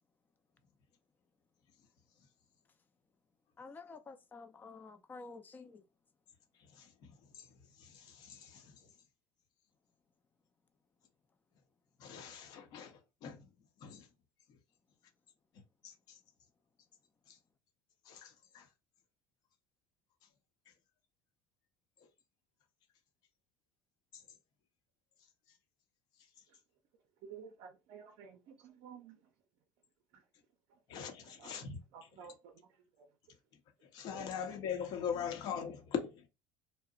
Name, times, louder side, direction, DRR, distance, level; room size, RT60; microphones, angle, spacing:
voice 1, 3.6-5.8, left 4 dB, 25° left, 0.4 m, -50 dB
voice 2, 6.7-7.5 7.8-8.9 12.0-13.5 13.8-14.1 15.8-16.2 17.3-17.4 18.1-18.7 30.9-31.8 33.9-36.3, left 7 dB, 60° left, 0.8 m, -42 dB
voice 3, 27.2-29.3 30.1-30.3 30.7-30.8 31.2-33.2 34.2-34.3 35.1-35.7, right 7 dB, 70° right, 0.5 m, -55 dB
2.7 x 2.1 x 2.4 m
supercardioid pair, 95°, 8 cm